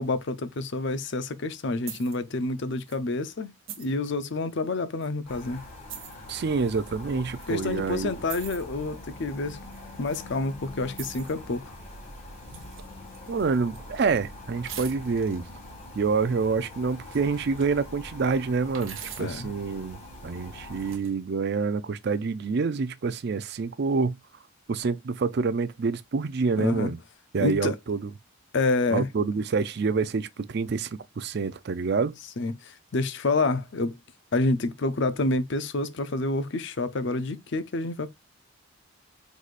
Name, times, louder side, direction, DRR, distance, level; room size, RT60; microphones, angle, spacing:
voice 1, 0.0-5.6 7.5-9.6 10.0-11.7 19.2-19.5 26.6-26.9 27.4-27.8 28.5-29.1 32.4-34.0 34.3-38.1, left 2 dB, 55° left, 0.5 m, -28 dB
sound 1, 1.9-2.2 2.8-3.0 3.7-4.1 5.0-5.1 5.9-6.1 7.3-7.6 8.3-8.6 9.7-10.2 10.9-11.4 12.5-12.9 13.1-14.0 14.7-15.4 16.7-17.8 18.7-19.4 20.6-21.1, right 9 dB, 65° right, 1.0 m, -43 dB
sound 2, 5.3-21.0, left 1 dB, 30° left, 2.0 m, -44 dB
voice 2, 6.3-8.1 13.3-15.4 15.9-24.2 24.7-27.0 27.3-28.1 28.9-30.9 31.2-32.1, right 4 dB, 50° right, 0.4 m, -27 dB
4.7 x 4.0 x 2.4 m
head